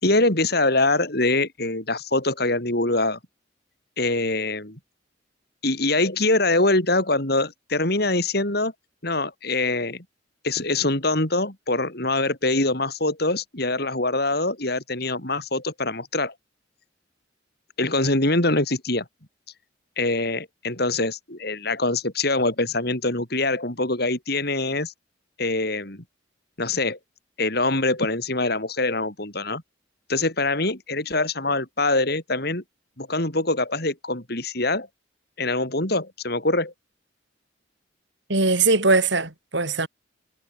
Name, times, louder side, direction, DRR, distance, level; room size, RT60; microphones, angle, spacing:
voice 1, 0.0-3.2 4.0-4.8 5.6-8.7 9.0-10.0 10.4-16.3 17.8-19.0 20.0-24.9 25.4-26.0 26.6-27.0 27.4-29.6 30.1-32.6 33.0-34.9 35.4-36.7, left 2 dB, 55° left, 4.7 m, -24 dB
voice 2, 38.3-39.9, right 3 dB, 65° right, 3.5 m, -20 dB
head